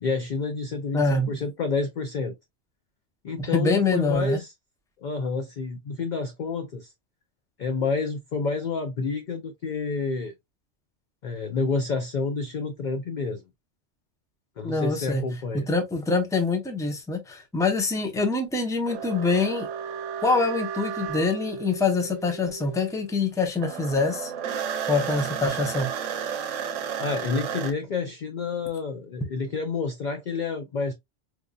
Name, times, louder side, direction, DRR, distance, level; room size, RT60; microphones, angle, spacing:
voice 1, 0.0-2.4 3.2-4.5 5.0-6.9 7.6-10.3 11.2-13.4 14.6-15.7 27.0-30.9, left 4 dB, 60° left, 0.5 m, -29 dB
voice 2, 0.9-1.4 3.4-4.4 14.6-15.2 15.5-19.7 20.2-24.3 24.9-25.9, left 3 dB, 5° left, 0.5 m, -25 dB
sound 1, 18.9-23.3 23.6-27.7, right 7 dB, 80° right, 1.0 m, -33 dB
4.7 x 2.6 x 2.2 m
omnidirectional pair, 1.3 m